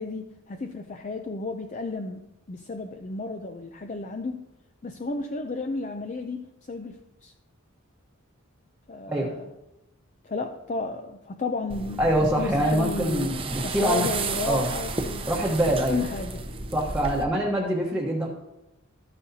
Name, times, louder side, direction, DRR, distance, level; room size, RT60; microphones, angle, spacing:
voice 1, 0.0-4.5 4.8-7.3 8.9-9.5 10.2-13.3 13.6-15.2 15.9-16.4, left 3 dB, 35° left, 6 dB, 0.5 m, -33 dB
sound 1, 11.7-17.2, right 3 dB, 25° right, 0.7 m, -33 dB
voice 2, 12.0-14.1 14.4-14.7 15.3-16.0 16.7-18.3, right 1 dB, 5° right, -4 dB, 1.1 m, -24 dB
13.0 x 9.7 x 2.8 m, 0.96 s
head